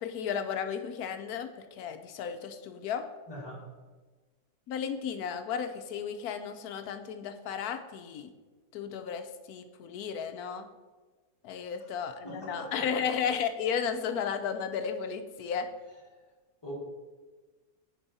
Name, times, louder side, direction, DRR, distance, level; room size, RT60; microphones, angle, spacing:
voice 1, 0.0-3.1 4.7-8.3 8.7-10.7 11.4-15.7, left 7 dB, 75° left, 8 dB, 1.1 m, -34 dB
voice 2, 3.3-3.6 12.2-12.9 16.6-16.7, equal, 15° left, -5 dB, 1.8 m, -41 dB
9.2 x 4.8 x 4.1 m, 1.3 s
omnidirectional pair, 1.6 m